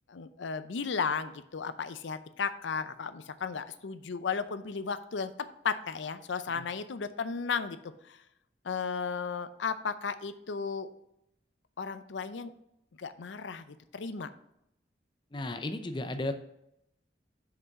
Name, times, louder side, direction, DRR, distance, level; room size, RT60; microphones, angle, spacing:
voice 1, 0.1-5.3 5.6-8.2 8.6-10.9 11.8-12.5 13.0-13.6 13.9-14.3, left 5 dB, 90° left, 12 dB, 0.5 m, -34 dB
voice 2, 15.3-16.3, left 2 dB, 25° left, 8 dB, 0.6 m, -34 dB
6.0 x 5.5 x 5.2 m, 0.80 s
head